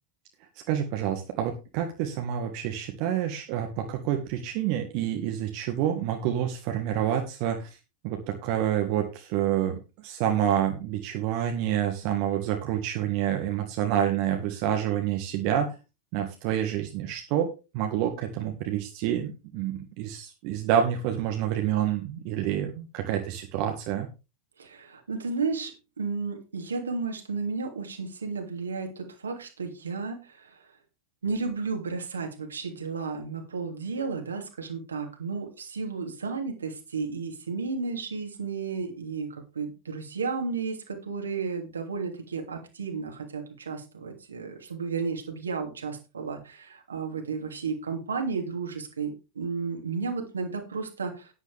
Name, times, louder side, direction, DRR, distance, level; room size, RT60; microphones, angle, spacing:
voice 1, 0.7-7.7 8.0-15.7 16.1-24.1, right 10 dB, 45° right, 4 dB, 1.6 m, -28 dB
voice 2, 24.6-30.7 31.2-51.3, right 4 dB, 70° right, 3 dB, 2.9 m, -33 dB
11.0 x 10.0 x 3.5 m, 0.29 s
figure-of-eight pair, 90°, 0 cm